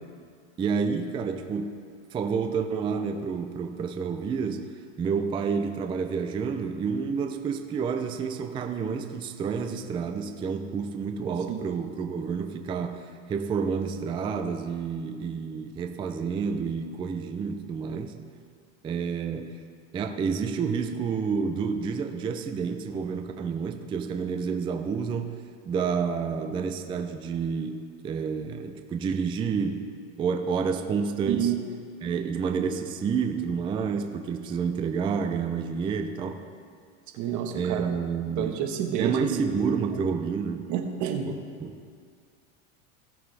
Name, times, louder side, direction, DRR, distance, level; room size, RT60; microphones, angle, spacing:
voice 1, 0.6-1.8 2.1-4.7 5.0-18.2 18.8-19.6 19.9-29.9 30.2-31.5 32.0-36.4 37.5-38.6 39.0-40.7 41.3-41.8, right 6 dB, 15° right, 6 dB, 0.3 m, -29 dB
voice 2, 31.3-31.6 37.2-37.9 38.4-39.5 40.7-41.3, right 9 dB, 45° right, 4 dB, 1.3 m, -29 dB
16.5 x 7.1 x 3.3 m, 2.1 s
supercardioid pair, 130°, 39 cm